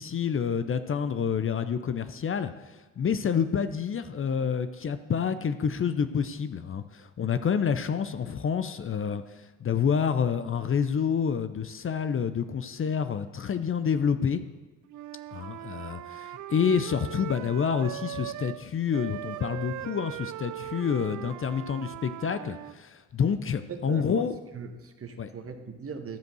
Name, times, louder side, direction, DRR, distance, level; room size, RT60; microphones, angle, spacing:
voice 1, 0.0-14.4 15.3-24.3 25.2-25.3, left 7 dB, 40° left, 11 dB, 0.6 m, -28 dB
Wind instrument woodwind instrument, 14.9-18.6 18.9-22.8, right 14 dB, 60° right, 0.5 m, -39 dB
voice 2, 23.7-24.3 24.5-26.2, right 5 dB, 40° right, 7 dB, 1.3 m, -39 dB
12.5 x 5.2 x 6.3 m, 1.2 s
supercardioid pair, 55°, 34 cm